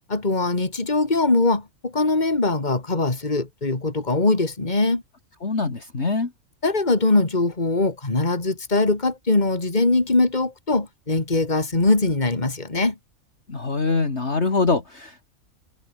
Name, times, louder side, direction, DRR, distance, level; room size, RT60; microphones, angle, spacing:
voice 1, 0.1-5.0 6.6-13.0, left 2 dB, 30° left, 3.1 m, -22 dB
voice 2, 5.4-6.3 13.5-15.3, left 4 dB, 50° left, 2.8 m, -24 dB
omnidirectional pair, 1.5 m